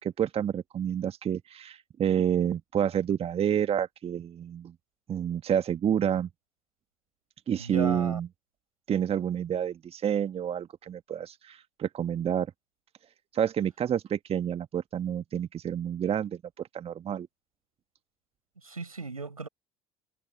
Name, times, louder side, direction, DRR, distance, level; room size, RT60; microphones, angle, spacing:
voice 1, 0.0-4.7 5.1-6.3 7.5-8.3 8.9-12.5 13.3-16.4 16.7-17.3, right 9 dB, 35° right, 1.4 m, -29 dB
voice 2, 7.6-8.2 18.6-19.5, right 4 dB, 85° right, 6.4 m, -35 dB
figure-of-eight pair, 65°, 18 cm